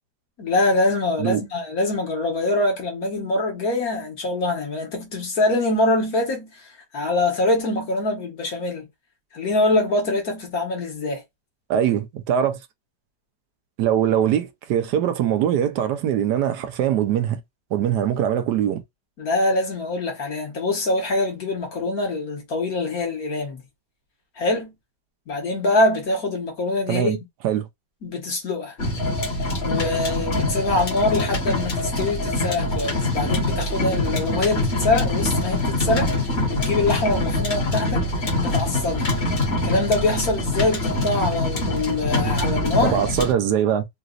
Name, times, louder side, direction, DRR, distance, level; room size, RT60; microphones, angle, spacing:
voice 1, 0.4-6.5 6.9-8.8 9.3-11.2 19.2-23.6 24.4-24.7 25.3-27.2 28.0-28.7 29.6-36.1 36.5-38.1 38.4-39.1 39.6-43.0, left 2 dB, 60° left, 1.6 m, -24 dB
voice 2, 11.7-12.6 13.8-17.4 17.7-18.8 26.9-27.2 27.4-27.7 42.8-43.8, right 9 dB, 75° right, 1.2 m, -22 dB
sound 1, 28.8-43.3, left 2 dB, 40° left, 1.3 m, -24 dB
3.9 x 2.5 x 2.4 m
omnidirectional pair, 1.9 m